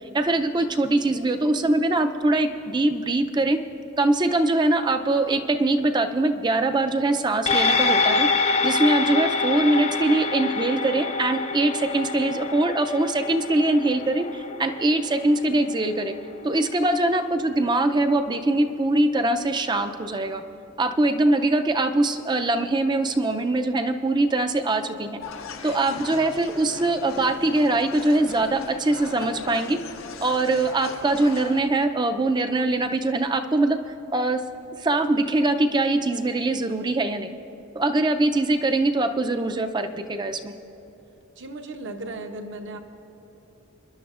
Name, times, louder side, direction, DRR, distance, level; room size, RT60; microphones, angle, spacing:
voice 1, 0.1-3.6 4.0-8.3 8.6-16.1 16.4-20.4 20.8-25.1 25.6-29.8 30.2-33.8 34.1-34.4 34.8-37.3 37.8-40.5, right 2 dB, 20° right, 7 dB, 0.4 m, -22 dB
sound 1, 7.5-16.1 16.5-16.6, left 4 dB, 30° left, 0.6 m, -26 dB
sound 2, 25.2-31.6, left 5 dB, 70° left, 0.7 m, -38 dB
voice 2, 41.4-42.8, right 2 dB, 60° right, 4 dB, 0.9 m, -36 dB
27.0 x 10.5 x 2.4 m, 3.0 s
head